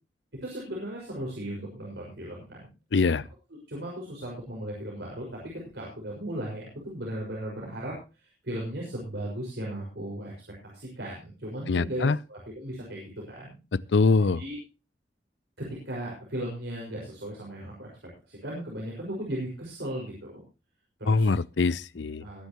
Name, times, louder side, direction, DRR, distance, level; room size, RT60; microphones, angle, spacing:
voice 1, 0.4-2.7 3.7-5.3 5.5-10.3 10.6-13.6 14.2-14.6 15.6-17.9 18.2-20.3 21.0-21.3 21.9-22.5, right 1 dB, 75° right, 5.9 m, -36 dB
voice 2, 2.9-3.2 11.7-12.2 13.9-14.4 21.1-22.2, left 4 dB, 85° left, 0.6 m, -23 dB
21.5 x 10.5 x 3.1 m
head